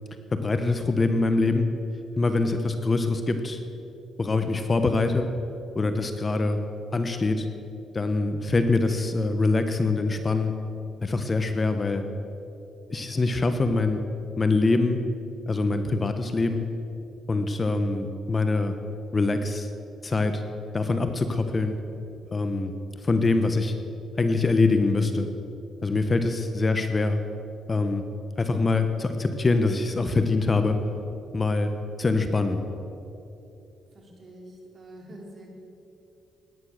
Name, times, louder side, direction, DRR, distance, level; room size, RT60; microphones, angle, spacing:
voice 1, 0.3-1.7 2.2-3.6 4.2-5.3 5.7-6.6 6.9-7.5 7.9-10.5 11.0-12.1 12.9-14.0 14.4-15.0 15.5-16.6 17.3-18.7 19.1-19.7 20.0-20.4 20.7-21.7 22.3-22.7 23.0-23.7 24.2-25.3 25.8-27.2 27.7-28.0 28.4-30.8 31.3-31.7 32.0-32.6, left 3 dB, 30° left, 8 dB, 1.1 m, -24 dB
voice 2, 33.9-35.5, right 1 dB, 40° right, -1 dB, 4.3 m, -46 dB
17.5 x 11.0 x 6.6 m, 2.8 s
cardioid pair, 90°, 0 cm